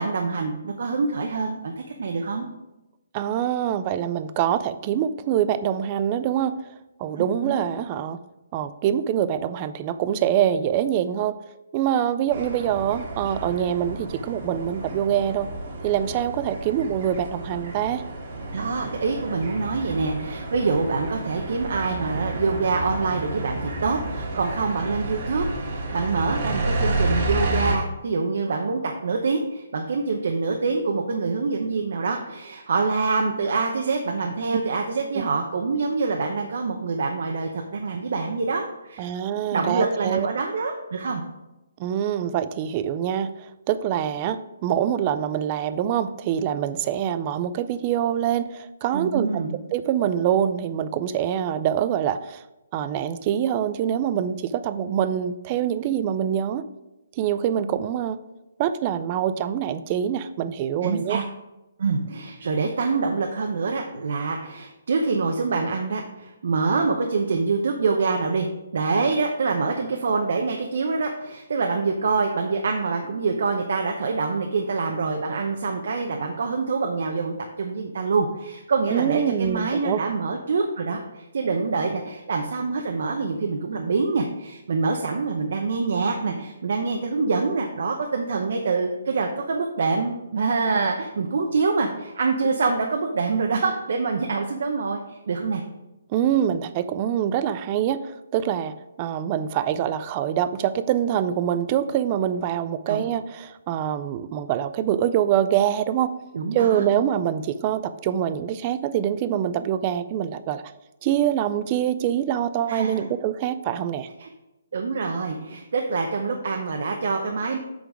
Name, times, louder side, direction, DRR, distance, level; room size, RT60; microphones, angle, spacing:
voice 1, 0.0-1.7 2.0-2.5 7.4-7.6 18.5-39.1 39.5-41.2 48.9-49.6 60.8-61.2 61.8-68.5 68.7-95.6 102.9-103.1 106.3-106.8 112.7-113.0 114.2-114.3 114.7-117.6, right 4 dB, 55° right, 3 dB, 0.7 m, -25 dB
voice 2, 3.1-6.6 7.0-8.2 8.5-11.4 11.7-15.5 15.8-18.0 35.1-35.2 39.0-40.3 41.8-49.4 49.7-52.4 52.7-56.6 57.2-58.2 58.6-61.2 78.9-80.0 96.1-106.1 106.5-110.6 111.0-114.1, right 10 dB, 20° right, 12 dB, 0.3 m, -25 dB
sound 1, 12.3-27.8, right 1 dB, 40° right, 1.4 m, -31 dB
8.1 x 4.0 x 4.7 m, 0.98 s
hypercardioid pair, 170°, 0 cm